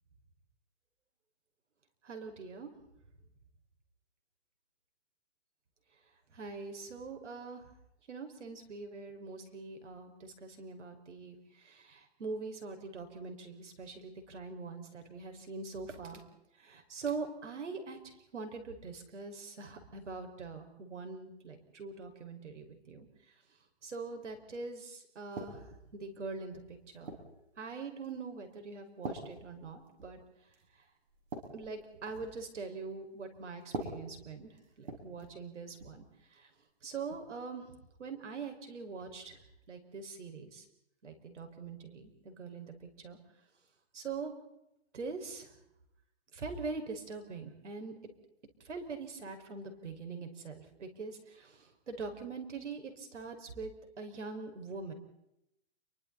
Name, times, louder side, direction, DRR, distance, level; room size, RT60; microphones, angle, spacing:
voice 1, 2.0-2.7 6.3-7.6 8.1-16.2 16.6-18.0 18.3-23.1 23.8-25.6 25.9-27.1 27.6-30.2 31.5-36.0 36.3-36.5 36.8-37.7 38.0-39.4 39.7-40.6 41.0-43.2 43.9-44.3 44.9-45.5 46.3-47.9 48.6-53.7 54.0-54.9, right 4 dB, 85° right, 5 dB, 5.8 m, -43 dB
sound 1, 25.4-25.9 26.5-27.4 28.0-28.3 29.0-30.2 30.5-30.7 31.1-32.4 33.6-35.4 35.7-36.0 37.1-37.3, right 2 dB, 65° right, 7.5 m, -44 dB
29.5 x 24.0 x 4.3 m, 0.85 s
hypercardioid pair, 170°, 35 cm